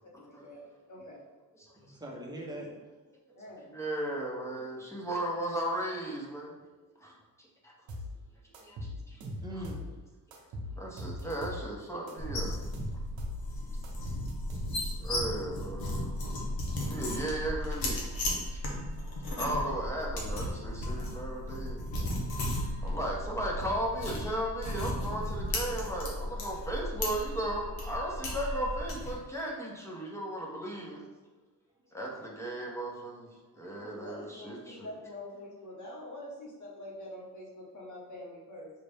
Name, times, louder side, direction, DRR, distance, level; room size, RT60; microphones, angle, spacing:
voice 1, 0.2-1.2 3.3-3.7 23.0-23.2 33.7-38.7, left 1 dB, 60° left, -3 dB, 1.4 m, -45 dB
voice 2, 1.7-3.0 3.3-3.4 6.7-7.1 8.9-9.0 9.4-9.9 13.5-13.6 31.3-31.4 31.8-31.9, equal, 10° right, -2 dB, 1.0 m, -44 dB
voice 3, 3.7-6.5 7.0-7.1 7.6-7.7 8.6-8.8 9.1-9.2 10.8-12.5 14.8-16.1 16.9-18.1 18.5-18.6 19.4-21.8 22.8-31.1 31.9-33.3 33.5-34.9, right 1 dB, 10° left, -3 dB, 1.0 m, -36 dB
sound 1, 7.9-8.1 8.5-9.9 10.3-11.7 12.1-13.4 13.8-15.0, left 1 dB, 90° right, 0.9 m, -40 dB
sound 2, 12.2-29.2, left 1 dB, 85° left, 1.0 m, -35 dB
5.5 x 2.5 x 3.5 m, 1.2 s
cardioid pair, 80°, 35 cm